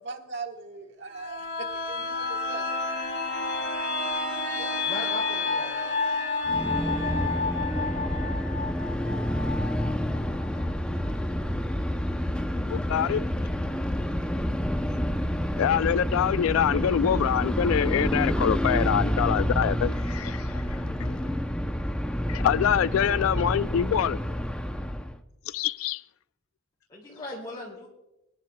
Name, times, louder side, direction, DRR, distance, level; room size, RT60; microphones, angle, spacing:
voice 1, 0.0-1.5 1.9-2.6, right 4 dB, 60° right, 1.5 m, -39 dB
sound 1, 1.1-10.7 11.1-11.2, left 3 dB, 55° left, 1.9 m, -30 dB
voice 2, 4.6-5.9 26.9-27.9, left 1 dB, 20° left, 2.5 m, -39 dB
sound 2, 6.5-25.2, equal, 5° left, 0.5 m, -28 dB
voice 3, 12.7-13.2 15.6-21.4 22.3-24.2 25.5-26.0, left 9 dB, 85° left, 0.3 m, -25 dB
26.0 x 10.5 x 2.2 m
head